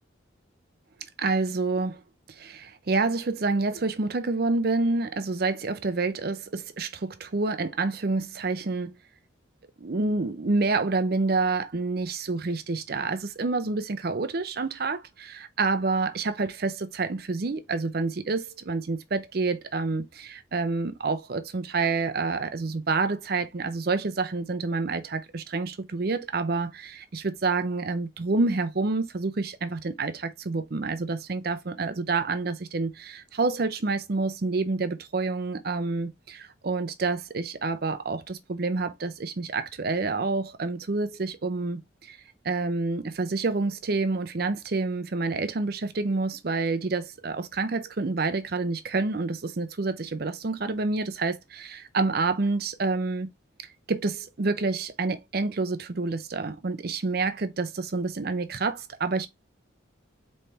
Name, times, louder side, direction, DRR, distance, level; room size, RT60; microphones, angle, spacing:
voice 1, 1.2-2.0 2.4-8.9 9.8-42.2 42.4-53.3 53.9-59.3, right 3 dB, 50° right, 0.5 m, -28 dB
4.2 x 3.2 x 3.3 m
head